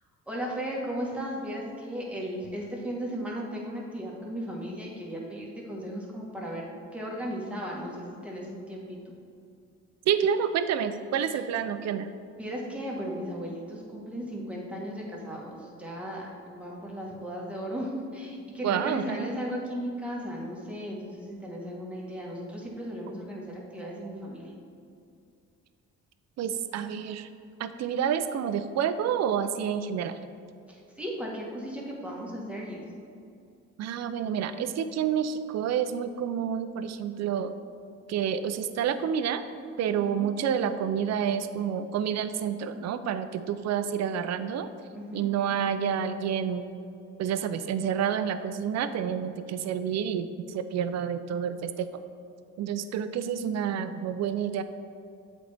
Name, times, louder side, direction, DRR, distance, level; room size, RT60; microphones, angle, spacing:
voice 1, 0.3-9.1 11.2-11.4 12.4-24.5 30.7-32.8 40.0-40.3 44.9-45.3, equal, 5° right, -3 dB, 1.3 m, -36 dB
voice 2, 10.1-12.1 18.6-19.3 26.4-27.3 27.6-30.2 33.8-37.5 38.1-39.4 39.8-44.7 45.1-46.7 47.2-51.9 52.6-54.6, right 8 dB, 60° right, 11 dB, 0.4 m, -29 dB
7.7 x 4.2 x 3.4 m, 2.4 s
cardioid pair, 90°, 30 cm